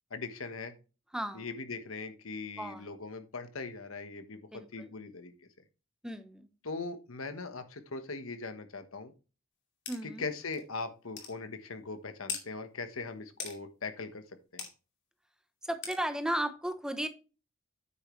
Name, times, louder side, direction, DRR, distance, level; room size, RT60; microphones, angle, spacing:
voice 1, 0.1-0.7 1.3-5.3 6.6-9.1 10.0-14.2 14.5-14.7, left 3 dB, 85° left, 9 dB, 1.2 m, -40 dB
voice 2, 1.1-1.5 2.6-2.9 4.5-4.9 6.0-6.5 9.9-10.3 15.6-17.1, right 1 dB, 5° right, 9 dB, 0.8 m, -35 dB
sound 1, 9.9-10.0 10.5-10.6 11.2-11.3 12.3-12.4 13.4-13.6 14.6-14.7 15.8-16.0, left 6 dB, 60° left, 2.5 m, -38 dB
9.1 x 6.8 x 3.2 m, 0.32 s
head